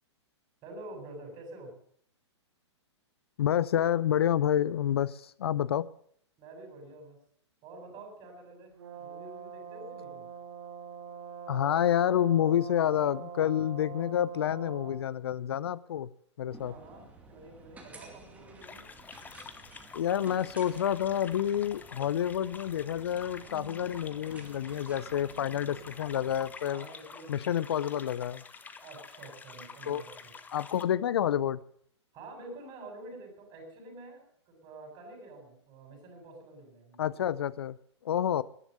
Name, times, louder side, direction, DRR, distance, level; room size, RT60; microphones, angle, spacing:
voice 1, 0.6-1.7 6.4-7.2 7.6-10.3 16.6-18.9 23.3-23.9 25.4-25.9 26.6-27.5 28.8-30.3 32.1-37.2, right 2 dB, 30° right, 2 dB, 7.5 m, -48 dB
voice 2, 3.4-5.9 11.5-16.1 16.4-16.7 19.9-26.8 27.3-28.4 29.9-30.0 30.5-31.6 37.0-37.8 38.0-38.4, left 10 dB, 60° left, 19 dB, 0.5 m, -28 dB
Brass instrument, 8.8-15.0, right 6 dB, 60° right, 2.8 m, -44 dB
sound 1, 16.5-26.5, right 3 dB, 10° right, 2.6 m, -53 dB
sound 2, 18.6-30.8, left 5 dB, 10° left, 1.0 m, -48 dB
14.5 x 11.0 x 6.6 m, 0.62 s
figure-of-eight pair, 115°, 15 cm